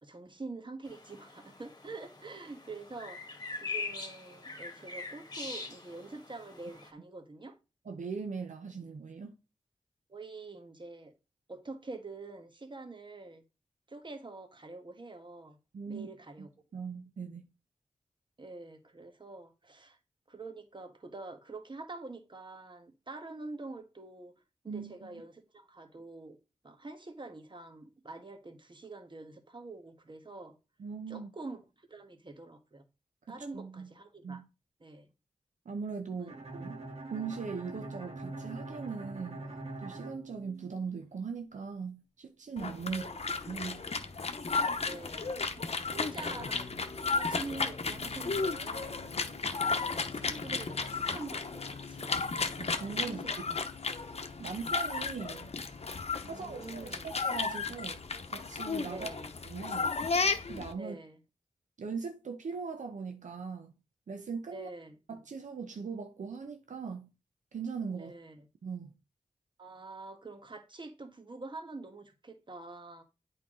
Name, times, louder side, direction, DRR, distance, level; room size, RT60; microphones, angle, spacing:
voice 1, 0.0-7.5 10.1-11.1 11.5-13.4 13.9-15.6 15.9-16.5 18.4-20.0 20.3-24.3 24.6-26.4 26.6-30.6 31.1-32.8 33.3-34.4 34.8-35.1 36.1-36.4 42.8-43.3 44.8-46.7 47.0-52.3 53.1-53.7 56.2-57.1 58.9-59.3 60.8-61.2 64.5-65.0 68.0-68.5 69.6-73.0, right 3 dB, 40° right, 1.5 m, -46 dB
sound 1, 0.8-6.9, left 3 dB, 35° left, 1.6 m, -43 dB
voice 2, 7.8-9.3 15.7-16.1 16.4-16.5 16.7-17.4 24.7-25.2 30.8-31.3 33.3-33.9 34.2-34.5 35.6-36.8 37.1-39.5 39.8-43.0 43.5-43.8 52.6-53.3 54.4-55.5 56.2-59.1 59.5-59.9 60.5-61.0 61.8-63.7 64.1-64.7 65.1-67.1 67.5-68.1 68.6-68.9, right 5 dB, 80° right, 0.8 m, -40 dB
Bowed string instrument, 36.3-41.1, right 2 dB, 55° right, 1.8 m, -43 dB
sound 2, 42.6-60.7, left 4 dB, 55° left, 0.9 m, -34 dB
8.4 x 4.6 x 3.8 m
cardioid pair, 50°, 13 cm